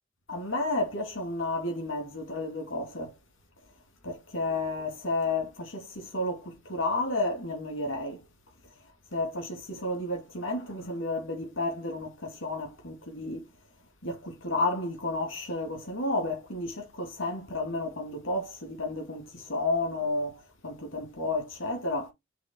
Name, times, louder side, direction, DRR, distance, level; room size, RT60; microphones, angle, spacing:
voice 1, 0.3-3.2 4.0-8.2 9.1-13.5 14.0-22.1, left 2 dB, 85° left, 2.4 m, -32 dB
6.0 x 3.2 x 5.3 m
head